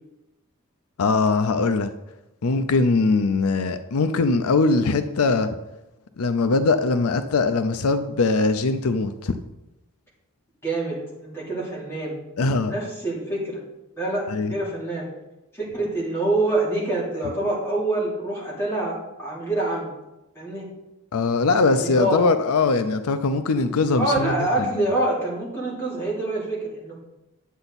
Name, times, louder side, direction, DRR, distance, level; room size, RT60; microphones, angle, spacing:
voice 1, 1.0-1.9 2.4-5.6 6.2-9.4 12.4-12.7 14.3-14.5 21.1-24.9, left 3 dB, 80° left, 10 dB, 0.5 m, -21 dB
voice 2, 10.6-12.1 12.7-13.6 14.0-15.0 15.5-19.9 20.3-20.6 21.6-22.2 23.9-26.9, right 2 dB, 10° left, -6 dB, 3.3 m, -26 dB
10.0 x 7.9 x 4.1 m, 0.96 s
head